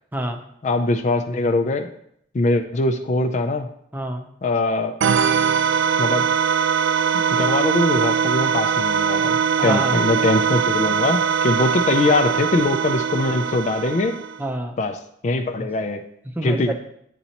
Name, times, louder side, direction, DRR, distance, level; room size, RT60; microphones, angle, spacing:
voice 1, 0.6-1.9 2.3-3.7 4.4-4.9 6.0-6.2 7.3-14.2 14.8-15.0 15.2-16.0 16.4-16.7, left 2 dB, 40° left, 6 dB, 0.4 m, -22 dB
voice 2, 3.9-4.3 9.6-10.0 11.7-11.8 14.4-14.8 15.6-15.7 16.4-16.7, right 1 dB, 10° right, 4 dB, 0.6 m, -27 dB
sound 1, 5.0-14.4, right 7 dB, 75° right, 0.3 m, -21 dB
9.9 x 4.0 x 2.9 m, 0.70 s
head